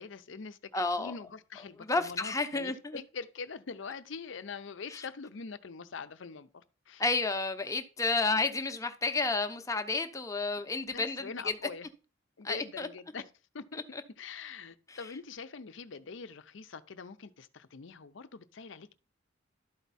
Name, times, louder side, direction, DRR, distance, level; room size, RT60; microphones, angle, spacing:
voice 1, 0.0-0.7 1.0-7.0 10.8-11.9 12.4-13.3 13.5-13.8 14.2-18.9, left 5 dB, 65° left, 0.6 m, -44 dB
voice 2, 0.7-1.1 1.8-3.0 7.0-11.5 12.4-12.9 13.9-14.0 14.9-15.0, left 3 dB, 15° left, 0.7 m, -31 dB
12.0 x 4.6 x 4.1 m
head